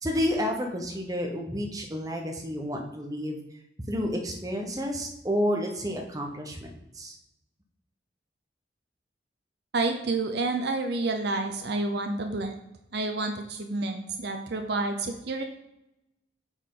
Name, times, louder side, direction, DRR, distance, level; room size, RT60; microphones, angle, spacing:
voice 1, 0.0-3.4 3.8-6.7 6.9-7.1, equal, 20° right, 1 dB, 1.0 m, -30 dB
voice 2, 9.7-12.5 12.9-15.4, right 3 dB, 60° right, 5 dB, 0.7 m, -29 dB
8.8 x 4.7 x 3.9 m, 0.87 s
head